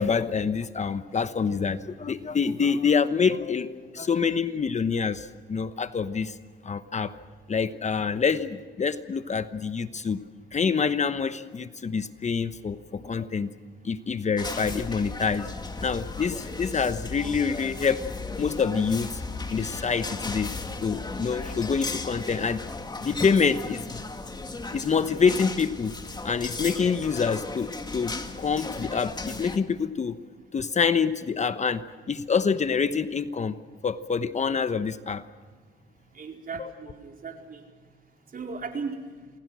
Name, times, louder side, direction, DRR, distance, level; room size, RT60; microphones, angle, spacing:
voice 1, 0.0-6.3 6.6-7.1 7.5-10.2 10.5-13.5 13.8-15.5 15.8-18.0 18.4-19.2 19.5-20.5 20.8-22.6 23.0-24.0 24.7-25.9 26.2-30.1 30.5-31.8 32.1-33.6 33.8-35.2 36.6-36.7, left 5 dB, 35° left, 11 dB, 1.1 m, -26 dB
sound 1, 14.4-29.6, left 3 dB, 20° left, 2.3 m, -36 dB
voice 2, 36.1-37.6 38.3-39.0, right 5 dB, 45° right, 2 dB, 4.4 m, -36 dB
28.5 x 20.5 x 6.3 m, 1.5 s
cardioid pair, 90°, 20 cm